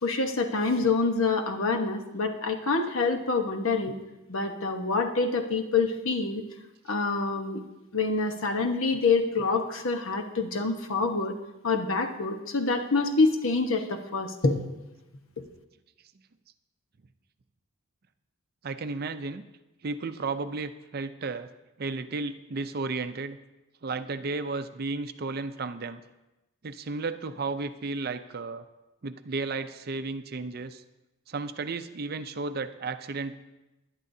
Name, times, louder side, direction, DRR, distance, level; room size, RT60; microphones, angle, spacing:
voice 1, 0.0-4.0 4.3-6.4 6.9-7.6 7.9-11.3 11.6-14.6, left 3 dB, 65° left, 4 dB, 1.1 m, -26 dB
voice 2, 18.6-19.4 19.8-21.5 21.8-23.4 23.8-26.0 26.6-28.6 29.0-30.8 31.3-33.3, right 3 dB, 45° right, 10 dB, 0.5 m, -33 dB
20.5 x 11.0 x 2.7 m, 1.0 s
head